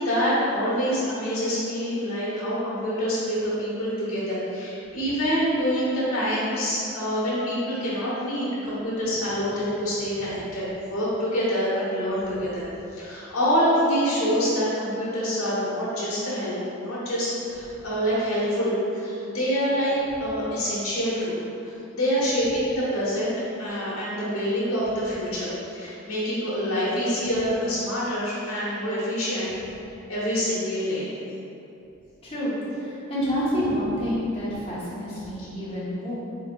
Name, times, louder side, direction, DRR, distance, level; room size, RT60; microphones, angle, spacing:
voice 1, 0.0-12.7 12.9-16.6 16.8-29.5 30.1-31.1, equal, 75° left, -8 dB, 1.1 m, -26 dB
voice 2, 10.2-10.5 32.2-36.1, equal, 25° left, -9 dB, 0.9 m, -28 dB
4.7 x 3.2 x 2.4 m, 2.8 s
head